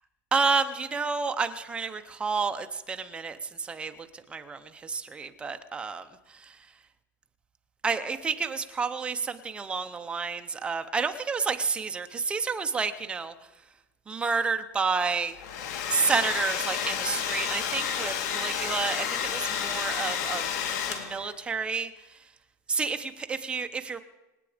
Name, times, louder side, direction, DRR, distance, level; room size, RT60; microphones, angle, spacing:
voice 1, 0.3-6.1 6.4-6.5 7.8-13.3 14.1-15.4 15.9-20.6 20.9-21.9 22.7-24.0, right 5 dB, 10° right, 8 dB, 0.7 m, -30 dB
Domestic sounds home sounds, 15.3-21.3, left 8 dB, 65° left, 1.8 m, -31 dB
26.0 x 9.0 x 5.0 m, 1.0 s
supercardioid pair, 165°, 10 cm